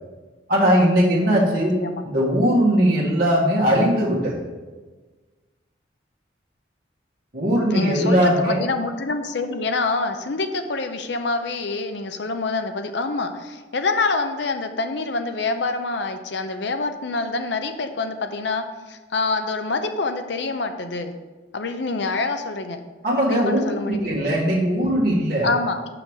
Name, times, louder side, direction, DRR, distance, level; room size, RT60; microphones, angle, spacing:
voice 1, 0.5-1.8 2.0-4.4 7.3-8.6 23.0-23.6 24.0-25.5, equal, 50° right, -6 dB, 1.7 m, -19 dB
voice 2, 7.7-21.1 21.5-22.8 23.3-24.2 25.4-25.8, left 3 dB, 70° left, 7 dB, 0.7 m, -26 dB
5.8 x 5.3 x 6.4 m, 1.3 s
head